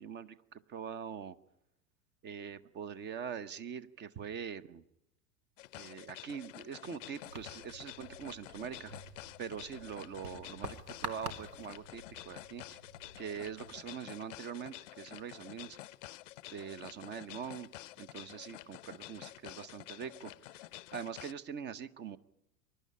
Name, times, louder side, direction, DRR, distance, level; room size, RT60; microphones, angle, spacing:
voice 1, 0.0-1.4 2.2-4.8 5.7-8.9 9.4-12.8 13.2-15.8 16.5-17.7 18.0-20.6 20.9-22.2, right 7 dB, 20° right, 17 dB, 0.8 m, -43 dB
sound 1, 5.6-21.3, left 16 dB, 50° left, 0.7 m, -50 dB
sound 2, 7.2-13.8, right 2 dB, 80° right, 1.9 m, -48 dB
24.5 x 11.5 x 9.8 m, 0.86 s
figure-of-eight pair, 90°, 47 cm